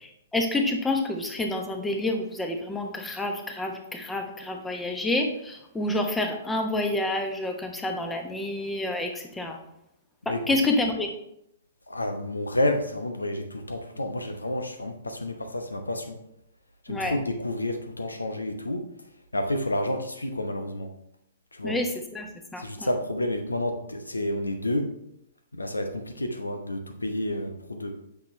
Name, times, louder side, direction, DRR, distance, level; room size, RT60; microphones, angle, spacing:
voice 1, 0.3-9.6 10.2-11.1 16.9-17.2 21.6-22.3 22.5-22.9, left 2 dB, 10° left, 4 dB, 1.1 m, -28 dB
voice 2, 10.3-10.6 11.9-16.2 16.8-18.9 19.3-20.9 21.5-21.8 22.6-24.9 25.5-28.0, left 1 dB, 85° left, 6 dB, 1.0 m, -30 dB
8.3 x 6.1 x 3.3 m, 0.78 s
figure-of-eight pair, 115°, 0 cm